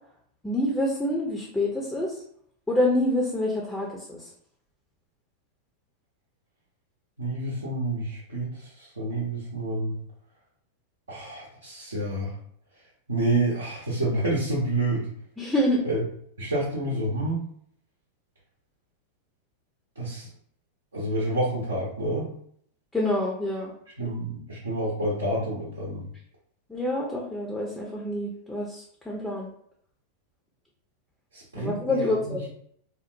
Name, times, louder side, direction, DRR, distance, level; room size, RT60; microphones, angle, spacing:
voice 1, 0.4-2.1 2.7-4.3 15.4-15.8 22.9-23.7 26.7-29.5 31.5-32.4, left 1 dB, 5° left, -2 dB, 0.5 m, -27 dB
voice 2, 7.2-10.0 11.1-12.3 13.1-15.1 15.8-16.0 16.4-17.4 20.0-20.3 20.9-22.3 24.0-26.0 31.3-32.4, right 1 dB, 75° right, -7 dB, 0.7 m, -28 dB
2.8 x 2.0 x 2.5 m, 0.65 s
figure-of-eight pair, 90°, 0 cm